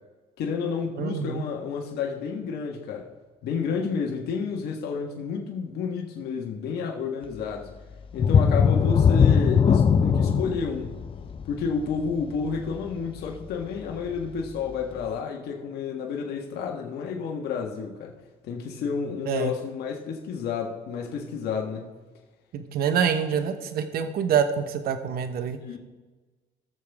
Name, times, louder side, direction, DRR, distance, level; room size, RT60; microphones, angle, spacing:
voice 1, 0.4-3.1 3.4-7.7 8.1-11.0 11.4-18.1 18.4-21.9 25.6-25.8, left 5 dB, 70° left, 1 dB, 1.6 m, -30 dB
voice 2, 1.0-1.4 19.3-19.5 22.5-25.6, right 7 dB, 65° right, 9 dB, 1.1 m, -26 dB
sound 1, 8.2-13.6 14.1-14.2 14.7-14.8, left 6 dB, 30° left, 0.6 m, -21 dB
17.5 x 7.1 x 3.6 m, 1.3 s
cardioid pair, 110°, 17 cm